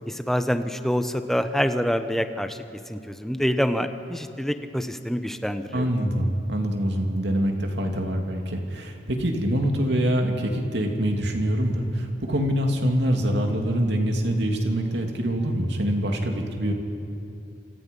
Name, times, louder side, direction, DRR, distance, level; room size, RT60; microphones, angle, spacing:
voice 1, 0.1-5.9, equal, ahead, 8 dB, 1.0 m, -26 dB
voice 2, 5.7-16.7, equal, 65° right, 2 dB, 2.8 m, -25 dB
28.0 x 27.0 x 5.5 m, 2.6 s
head